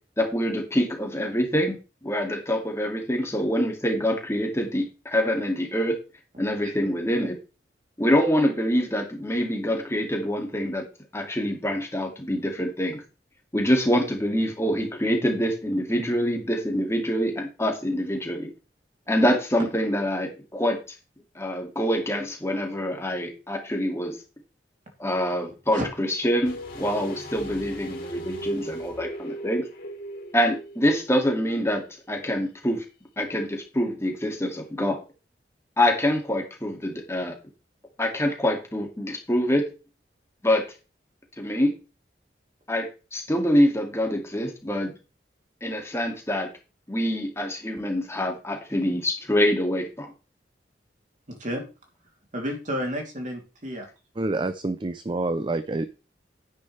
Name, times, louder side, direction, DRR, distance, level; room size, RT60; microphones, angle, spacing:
voice 1, 0.2-1.8 2.0-5.9 6.4-7.4 8.0-10.8 11.1-13.0 13.5-18.5 19.1-20.8 21.4-24.2 25.0-29.6 30.3-32.8 33.2-35.0 35.8-37.3 38.0-39.6 40.4-40.6 41.4-41.7 42.7-44.9 45.6-46.5 46.9-50.1, equal, 15° left, 2 dB, 2.3 m, -25 dB
sound 1, 26.4-31.3 31.5-31.6, right 1 dB, 55° left, 3.3 m, -38 dB
voice 2, 51.3-51.6 52.3-53.9, equal, 45° right, 1 dB, 3.0 m, -31 dB
voice 3, 54.2-55.9, right 2 dB, 30° right, 12 dB, 0.5 m, -27 dB
10.0 x 9.7 x 3.3 m, 0.32 s
head